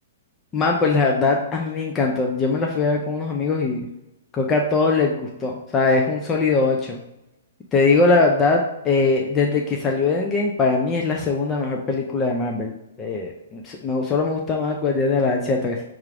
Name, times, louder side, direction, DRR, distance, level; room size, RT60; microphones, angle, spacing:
voice 1, 0.5-3.9 4.3-7.0 7.7-12.7 13.0-15.8, left 3 dB, 15° left, 0 dB, 0.3 m, -21 dB
5.8 x 2.4 x 3.2 m, 0.89 s
hypercardioid pair, 170°, 0 cm